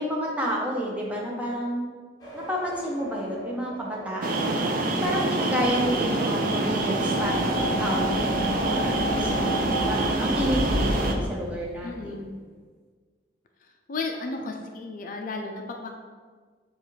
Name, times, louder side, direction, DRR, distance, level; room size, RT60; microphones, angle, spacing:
voice 1, 0.0-1.9 2.3-12.2, equal, 10° right, -3 dB, 0.7 m, -30 dB
sound 1, 2.2-11.3, equal, 25° left, 1.1 m, -36 dB
sound 2, 4.2-11.1, right 2 dB, 55° right, 0.4 m, -26 dB
sound 3, 6.9-11.0 11.3-11.4, left 1 dB, 85° right, 1.1 m, -34 dB
voice 2, 11.8-12.3 13.9-16.0, left 3 dB, 50° left, 3 dB, 0.4 m, -34 dB
6.9 x 2.4 x 3.1 m, 1.6 s
head